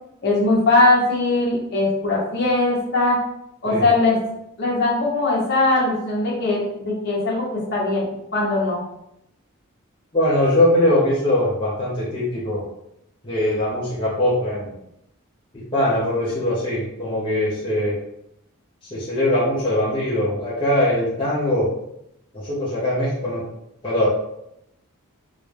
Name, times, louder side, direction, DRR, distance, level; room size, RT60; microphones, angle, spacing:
voice 1, 0.2-3.2 3.6-4.2 4.6-8.8, left 2 dB, 50° left, -4 dB, 1.1 m, -20 dB
voice 2, 10.1-12.6 13.2-14.7 15.5-17.9 18.9-21.7 22.3-23.4 23.8-24.1, left 1 dB, 25° left, -9 dB, 0.7 m, -21 dB
3.7 x 2.2 x 3.3 m, 0.81 s
head